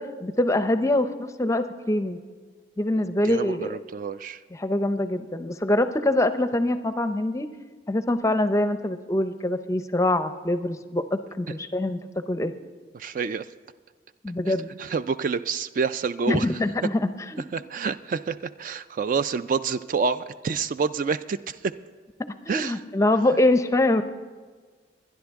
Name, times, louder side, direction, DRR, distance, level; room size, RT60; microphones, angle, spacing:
voice 1, 0.0-2.2 2.8-3.7 4.6-7.5 7.9-12.0 12.3-12.5 14.2-14.7 16.3-17.4 22.5-24.0, left 1 dB, 15° left, 10 dB, 0.5 m, -24 dB
voice 2, 3.0-4.4 12.9-13.5 14.5-16.5 17.5-21.7 22.5-22.8, right 5 dB, 45° right, 13 dB, 0.3 m, -28 dB
23.0 x 10.5 x 3.5 m, 1.4 s
head